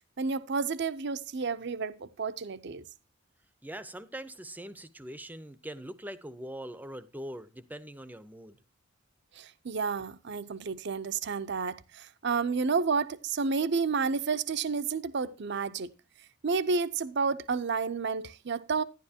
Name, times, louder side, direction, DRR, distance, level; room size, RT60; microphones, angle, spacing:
voice 1, 0.2-2.8 9.3-15.9 16.4-18.8, right 5 dB, 60° right, 0.6 m, -30 dB
voice 2, 3.6-8.6, right 1 dB, 10° right, 0.6 m, -42 dB
12.0 x 10.5 x 2.8 m
head